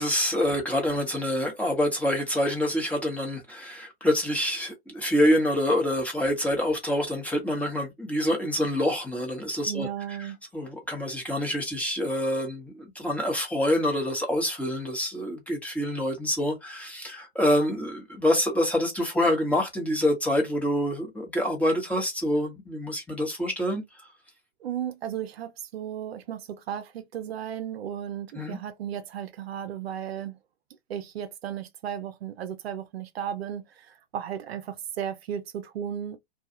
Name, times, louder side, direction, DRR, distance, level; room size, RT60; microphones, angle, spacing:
voice 1, 0.0-9.9 10.5-23.8 28.3-28.6, equal, 5° left, 1.0 m, -26 dB
voice 2, 9.7-10.4 24.6-30.4 30.9-36.2, right 9 dB, 70° right, 0.6 m, -35 dB
2.3 x 2.3 x 2.7 m
hypercardioid pair, 105°, 32 cm